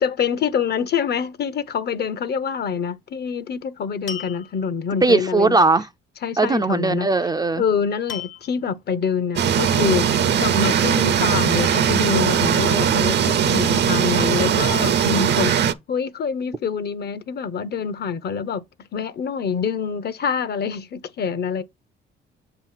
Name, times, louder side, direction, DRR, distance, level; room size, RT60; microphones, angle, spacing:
voice 1, 0.0-5.6 6.2-7.1 7.6-18.6 18.9-21.6, left 6 dB, 55° left, 0.7 m, -25 dB
sound 1, 4.1-5.0 8.1-8.7 10.0-10.6 11.6-12.4 13.4-14.3, left 8 dB, 70° left, 1.3 m, -39 dB
voice 2, 5.0-5.9 6.4-7.6, right 3 dB, 20° right, 0.3 m, -19 dB
sound 2, 9.4-15.7, right 8 dB, 60° right, 0.6 m, -19 dB
7.2 x 2.9 x 5.6 m
cardioid pair, 90°, 20 cm